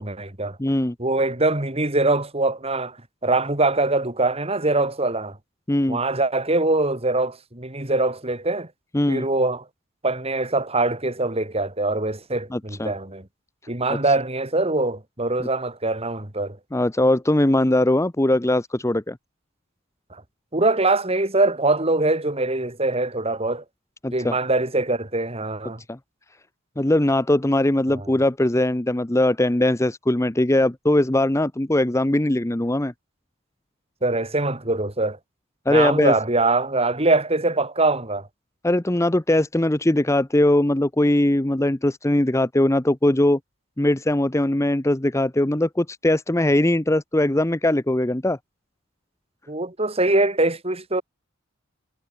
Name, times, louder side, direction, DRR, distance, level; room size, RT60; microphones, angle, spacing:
voice 1, 0.0-0.6 1.0-3.0 3.2-5.4 5.9-8.7 9.1-9.6 10.0-13.3 13.7-16.6 20.1-20.2 20.5-23.6 24.1-25.8 27.9-28.1 34.0-35.2 35.7-38.3 49.5-51.0, right 2 dB, 25° right, 3.0 m, -23 dB
voice 2, 0.6-0.9 5.7-6.0 8.9-9.2 12.5-12.9 15.4-15.5 16.7-19.2 24.0-24.4 25.9-26.0 26.8-32.9 35.7-36.1 38.6-43.4 43.8-48.4, left 1 dB, 15° left, 0.7 m, -20 dB
head